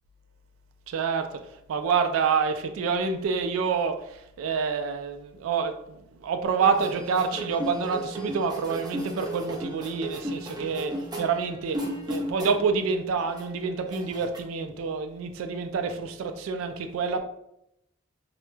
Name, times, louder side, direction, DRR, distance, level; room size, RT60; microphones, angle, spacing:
voice 1, 0.9-1.3 1.7-17.2, right 5 dB, 80° right, 6 dB, 0.3 m, -27 dB
sound 1, 6.6-12.8 13.1-14.4, right 1 dB, 20° right, 0.5 m, -35 dB
2.2 x 2.0 x 3.1 m, 0.80 s
head